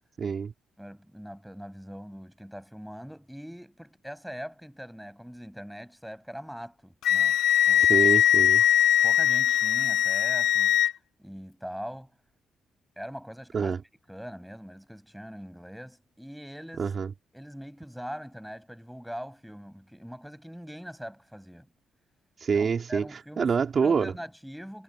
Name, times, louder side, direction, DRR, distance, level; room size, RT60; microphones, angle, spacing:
voice 1, 0.2-0.5 7.8-8.6 13.5-13.8 16.8-17.1 22.4-23.0 23.4-24.1, right 6 dB, 45° right, 2.8 m, -26 dB
voice 2, 0.8-7.4 7.7-7.9 9.0-10.8 11.2-12.1 13.0-13.7 14.1-16.9 17.3-21.7 22.5-24.8, equal, ahead, 7.2 m, -42 dB
Wind instrument woodwind instrument, 7.0-10.9, left 11 dB, 75° left, 1.6 m, -21 dB
cardioid pair, 90°, 0 cm